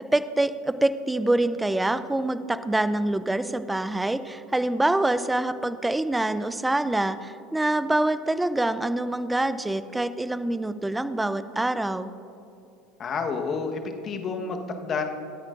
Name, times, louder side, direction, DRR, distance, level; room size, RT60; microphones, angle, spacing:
voice 1, 0.0-12.1, right 2 dB, 10° right, 13 dB, 0.5 m, -25 dB
voice 2, 13.0-15.0, left 5 dB, 40° left, 4 dB, 1.2 m, -29 dB
19.5 x 8.8 x 2.5 m, 2.8 s
hypercardioid pair, 80°, 0 cm